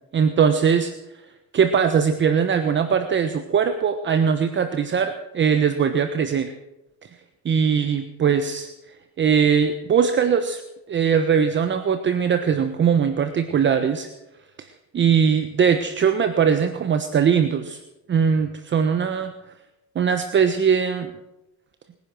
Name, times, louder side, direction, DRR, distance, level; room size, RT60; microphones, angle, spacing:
voice 1, 0.1-0.9 1.5-6.5 7.4-8.7 9.2-10.6 10.9-14.1 14.9-17.8 18.1-19.3 19.9-21.1, right 7 dB, 35° right, 8 dB, 1.1 m, -20 dB
21.0 x 10.5 x 6.3 m, 0.95 s
supercardioid pair, 105°, 33 cm